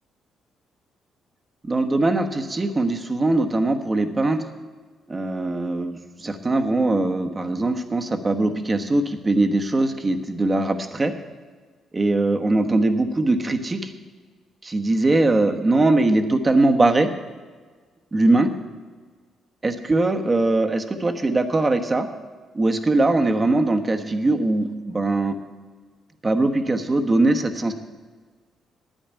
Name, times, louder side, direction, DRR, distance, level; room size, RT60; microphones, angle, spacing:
voice 1, 1.6-4.4 5.1-11.1 11.9-13.9 14.6-17.1 18.1-18.5 19.6-22.1 22.5-25.4 26.2-27.7, right 2 dB, 25° right, 6 dB, 1.1 m, -21 dB
9.5 x 9.0 x 8.8 m, 1.4 s
cardioid pair, 90°, 0 cm